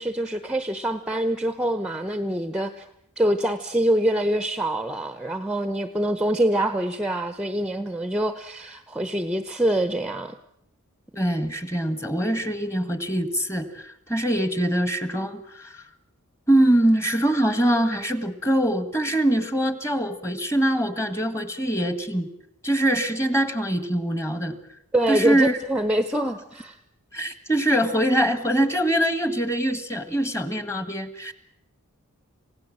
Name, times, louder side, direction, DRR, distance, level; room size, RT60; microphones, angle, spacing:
voice 1, 0.0-2.8 3.2-10.4 24.9-26.8, right 1 dB, 5° right, 11 dB, 0.9 m, -25 dB
voice 2, 11.2-15.8 16.5-22.3 22.6-24.6 25.1-25.6 27.1-31.3, right 1 dB, 15° left, 12 dB, 1.7 m, -23 dB
27.5 x 17.0 x 7.6 m, 0.76 s
head